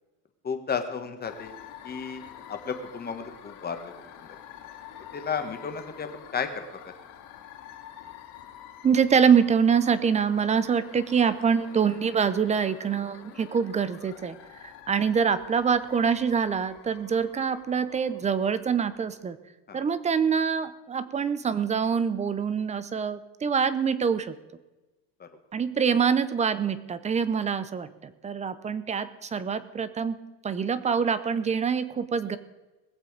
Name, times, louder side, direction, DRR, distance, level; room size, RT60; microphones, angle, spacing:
voice 1, 0.4-1.6 1.8-3.9 4.2-4.4 5.1-6.7 19.7-19.9 25.2-25.3, left 6 dB, 20° left, 6 dB, 1.5 m, -33 dB
sound 1, 1.2-19.2, left 10 dB, 55° left, 3.2 m, -48 dB
voice 2, 8.8-14.4 14.6-19.4 19.7-24.3 25.5-30.2 30.4-32.4, right 6 dB, 15° right, 14 dB, 0.5 m, -25 dB
20.5 x 7.5 x 5.1 m, 1.1 s
supercardioid pair, 135°, 48 cm